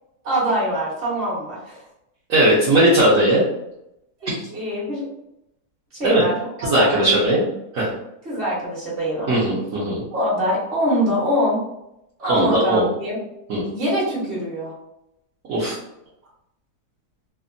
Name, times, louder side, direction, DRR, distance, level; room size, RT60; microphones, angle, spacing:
voice 1, 0.2-1.8 4.2-5.0 5.9-6.3 6.7-7.2 8.2-9.3 10.1-11.6 12.2-13.2 13.7-14.7, equal, 35° right, -7 dB, 1.4 m, -23 dB
voice 2, 2.3-3.4 4.3-4.4 6.0-6.2 6.6-7.5 7.7-7.9 9.3-10.0 12.3-12.8 13.5-13.6 15.5-15.8, right 1 dB, 60° right, -9 dB, 1.1 m, -18 dB
3.4 x 2.1 x 2.5 m, 0.82 s
omnidirectional pair, 1.8 m